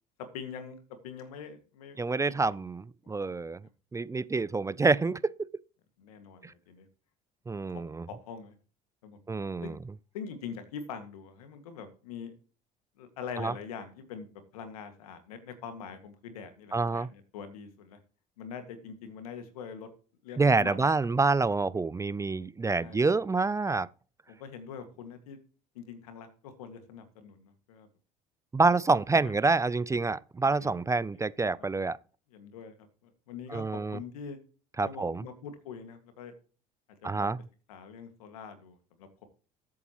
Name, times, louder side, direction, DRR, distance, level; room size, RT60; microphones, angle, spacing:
voice 1, 0.2-2.6 3.0-3.4 6.0-6.9 8.1-8.5 9.0-9.2 9.6-9.8 10.1-12.3 13.0-14.3 14.5-18.0 18.4-19.9 20.2-20.9 22.8-23.0 24.3-25.4 25.8-27.9 28.7-29.5 30.6-31.1 31.6-31.8 32.3-34.4 34.8-36.3 36.9-37.3 37.7-39.3, left 6 dB, 90° left, 2.0 m, -44 dB
voice 2, 2.0-3.6 3.9-5.3 6.4-6.5 7.5-8.0 9.3-9.7 13.4-13.5 16.7-17.1 20.4-23.9 28.5-32.0 33.5-34.0 34.8-35.2 37.0-37.4, right 3 dB, 15° right, 0.5 m, -27 dB
14.0 x 8.5 x 3.1 m
hypercardioid pair, 75°, 18 cm